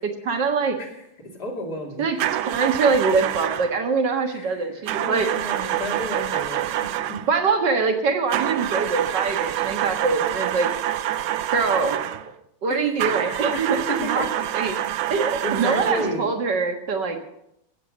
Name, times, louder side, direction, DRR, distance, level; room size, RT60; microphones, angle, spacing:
voice 1, 0.2-0.8 2.0-2.2 2.4-5.3 7.3-10.7 11.5-12.0 12.6-14.3 14.5-14.8 15.1-17.2, right 4 dB, 55° right, 5 dB, 2.1 m, -23 dB
voice 2, 1.4-2.0 4.3-7.2 12.7-12.8 13.2-14.3 15.4-16.3, left 1 dB, 45° left, 0 dB, 3.2 m, -32 dB
sound 1, 2.2-3.8 4.9-7.3 8.3-12.3 13.0-16.2, right 12 dB, 75° right, 1.4 m, -26 dB
16.5 x 7.9 x 6.4 m, 0.80 s
omnidirectional pair, 2.4 m